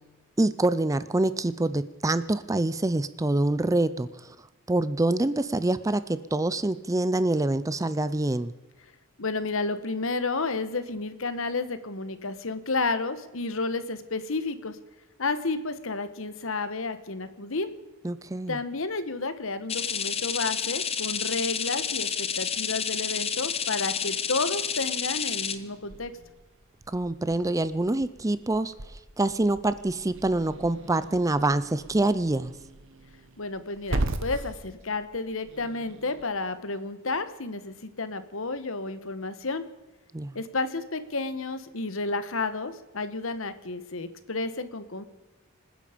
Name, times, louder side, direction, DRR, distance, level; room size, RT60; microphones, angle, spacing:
voice 1, 0.4-4.4 4.7-8.5 18.0-18.6 26.9-32.5 40.1-40.4, right 2 dB, 15° right, 14 dB, 0.5 m, -26 dB
voice 2, 9.2-14.8 15.2-17.7 18.5-26.1 33.4-39.6 40.3-45.0, left 3 dB, 65° left, 12 dB, 1.3 m, -31 dB
sound 1, 19.7-25.6, left 7 dB, 25° left, 0.9 m, -30 dB
Growling / Hiss, 25.5-36.2, right 2 dB, 60° right, 1.3 m, -38 dB
26.5 x 10.0 x 5.1 m, 1.1 s
head